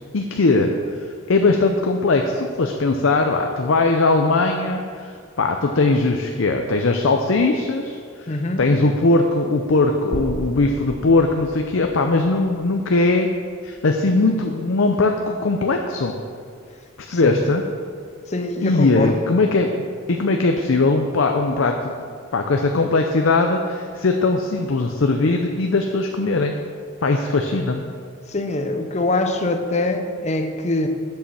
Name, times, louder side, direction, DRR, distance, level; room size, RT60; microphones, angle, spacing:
voice 1, 0.1-0.7 1.3-5.1 5.4-8.0 8.3-13.3 13.6-16.1 17.0-17.6 18.6-21.9 22.3-26.5 27.0-27.8, left 3 dB, 70° left, 4 dB, 0.6 m, -20 dB
voice 2, 8.3-8.7 17.1-17.4 18.3-19.3 28.3-30.9, left 2 dB, 35° left, 6 dB, 0.7 m, -23 dB
sound 1, 10.1-14.1, equal, 65° right, 1.8 m, -36 dB
7.8 x 7.1 x 5.9 m, 2.2 s
head